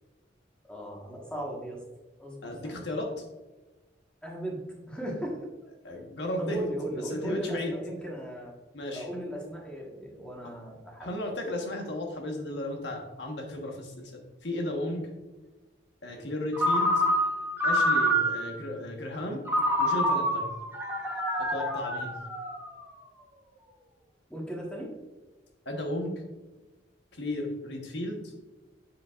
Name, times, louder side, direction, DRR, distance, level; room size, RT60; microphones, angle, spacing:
voice 1, 0.7-1.8 2.2-2.8 4.2-4.6 4.9-5.4 6.4-8.5 8.9-11.1 24.3-24.9, equal, 5° left, -2 dB, 1.4 m, -36 dB
voice 2, 2.4-3.1 5.8-6.6 7.1-7.7 8.7-9.1 11.0-15.1 16.0-17.0 17.6-19.4 19.8-20.5 21.4-22.2 25.6-26.2 27.1-28.2, left 1 dB, 70° left, 2 dB, 1.3 m, -34 dB
Ringtone, 16.5-18.6 19.5-22.8, equal, 15° right, 1.5 m, -27 dB
7.3 x 7.0 x 2.5 m, 1.2 s
head